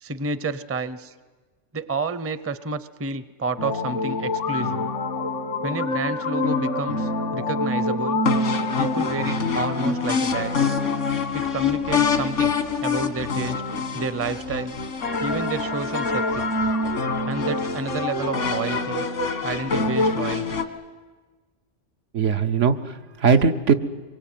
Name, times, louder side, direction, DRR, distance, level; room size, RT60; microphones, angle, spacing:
voice 1, 0.0-1.1 1.7-4.9 5.6-8.2 8.8-10.7 11.3-13.6 13.9-14.8 15.2-16.5 17.3-19.1 19.4-20.6, right 3 dB, 15° right, 15 dB, 0.5 m, -30 dB
sound 1, 3.6-20.7, left 3 dB, 85° left, 1.9 m, -25 dB
voice 2, 22.1-23.7, right 5 dB, 80° right, 7 dB, 1.3 m, -20 dB
24.5 x 22.5 x 9.1 m, 1.4 s
omnidirectional pair, 1.2 m